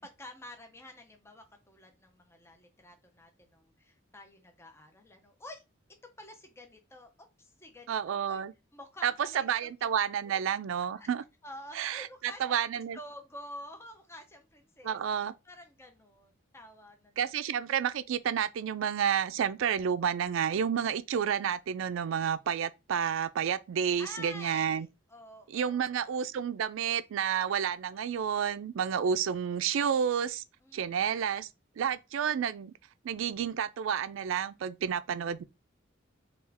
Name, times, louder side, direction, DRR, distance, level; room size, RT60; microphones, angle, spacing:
voice 1, 0.0-5.6 6.2-7.1 7.4-8.4 8.7-9.9 10.3-10.4 11.0-11.1 11.4-12.6 12.9-15.0 15.4-17.2 24.0-26.2 30.6-31.0, left 1 dB, 15° left, 0.5 m, -49 dB
voice 2, 7.9-8.5 9.0-11.2 11.8-12.1 12.4-13.0 14.8-15.3 17.2-24.9 25.5-30.4 30.7-31.5 31.8-32.7 33.0-35.4, right 8 dB, 80° right, 0.3 m, -30 dB
3.5 x 2.4 x 3.3 m
head